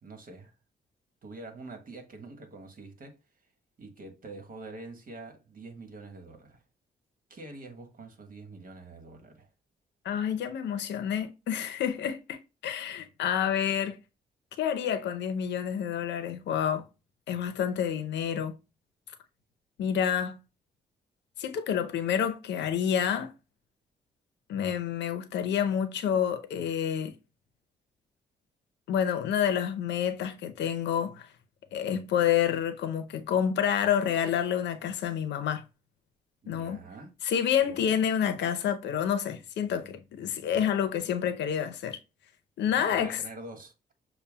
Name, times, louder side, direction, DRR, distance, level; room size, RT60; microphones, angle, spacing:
voice 1, 0.0-0.5 1.2-3.2 3.8-6.6 7.3-9.5 36.4-37.1 37.6-37.9 42.7-43.7, right 2 dB, 50° right, 1.4 m, -45 dB
voice 2, 10.0-14.0 14.6-16.8 17.3-18.6 19.8-20.4 21.4-23.3 24.5-27.1 28.9-31.3 31.7-35.6 36.5-36.8 37.2-42.0 42.6-43.2, left 9 dB, 80° left, 0.7 m, -28 dB
6.7 x 2.2 x 2.2 m
supercardioid pair, 60°, 18 cm